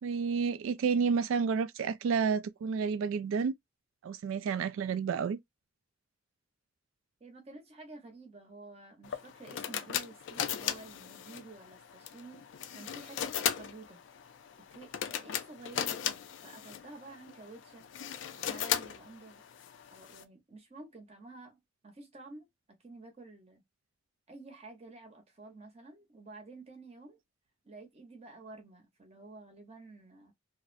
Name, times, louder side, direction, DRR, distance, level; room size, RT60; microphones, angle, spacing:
voice 1, 0.0-3.5 4.0-5.4, right 6 dB, 75° right, 0.3 m, -30 dB
voice 2, 7.2-14.0 14.7-17.9 18.4-19.4 19.9-21.6 21.8-22.5 22.8-23.6 24.3-27.2 27.6-30.3, right 2 dB, 30° right, 0.8 m, -51 dB
sound 1, 9.0-20.2, left 9 dB, 65° left, 0.3 m, -37 dB
2.5 x 2.0 x 2.5 m
head